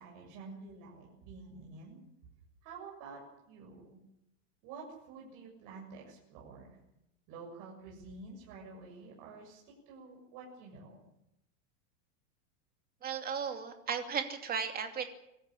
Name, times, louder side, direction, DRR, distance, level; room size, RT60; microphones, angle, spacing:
voice 1, 0.0-2.0 2.6-4.0 4.6-6.8 7.3-11.0, right 4 dB, 50° right, -2 dB, 7.2 m, -49 dB
voice 2, 13.0-15.1, right 6 dB, 20° right, 5 dB, 2.8 m, -35 dB
23.5 x 14.5 x 10.0 m, 0.83 s
supercardioid pair, 160°, 40 cm